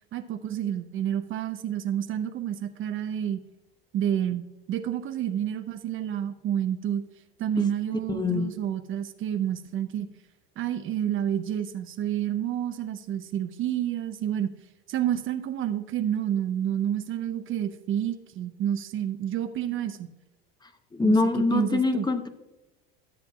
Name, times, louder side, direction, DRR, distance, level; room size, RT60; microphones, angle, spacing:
voice 1, 0.1-3.4 3.9-7.0 7.4-10.1 10.6-14.5 14.9-20.1 21.0-22.1, right 10 dB, 45° right, 8 dB, 0.7 m, -29 dB
voice 2, 8.1-8.5 20.9-22.3, left 3 dB, 15° left, 8 dB, 0.8 m, -24 dB
13.0 x 7.5 x 2.3 m, 1.1 s
hypercardioid pair, 80°, 30 cm